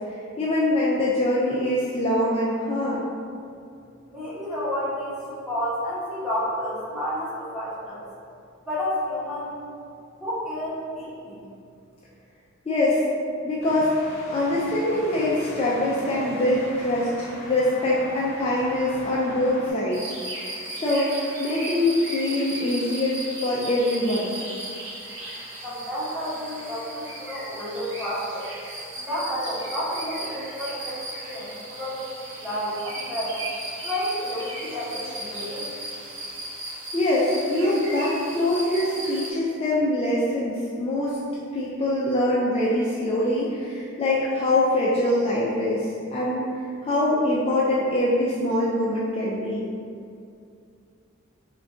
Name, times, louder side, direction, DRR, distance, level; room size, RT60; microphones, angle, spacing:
voice 1, 0.1-3.0 12.7-13.0 13.4-20.1 20.8-21.1 21.4-24.3 36.9-41.2 41.5-49.6, left 1 dB, 30° left, -7 dB, 0.3 m, -24 dB
voice 2, 4.1-8.0 8.7-9.6 10.2-11.4 25.6-28.5 29.0-33.4 33.8-35.7, equal, ahead, -11 dB, 0.9 m, -31 dB
sound 1, 13.6-19.7, left 1 dB, 90° left, 0.8 m, -40 dB
sound 2, 19.9-39.3, right 1 dB, 60° right, 0.8 m, -36 dB
3.5 x 2.2 x 3.7 m, 2.4 s
head